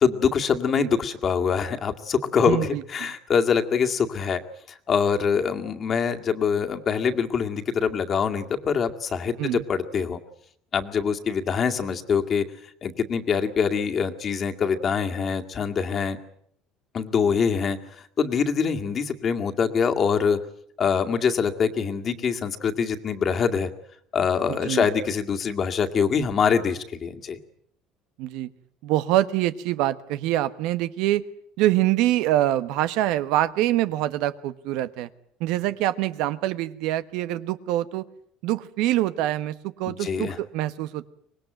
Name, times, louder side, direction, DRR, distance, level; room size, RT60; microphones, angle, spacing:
voice 1, 0.0-4.4 4.9-10.2 10.7-12.5 12.8-16.2 16.9-20.4 20.8-23.7 24.1-27.4 39.9-40.4, left 6 dB, 35° left, 6 dB, 2.1 m, -24 dB
voice 2, 2.5-3.1 9.4-9.6 24.5-24.9 28.2-28.5 28.8-31.2 31.6-35.1 35.4-38.0 38.4-41.1, right 14 dB, 75° right, 14 dB, 1.2 m, -25 dB
25.0 x 20.0 x 9.1 m, 0.67 s
cardioid pair, 130°, 0 cm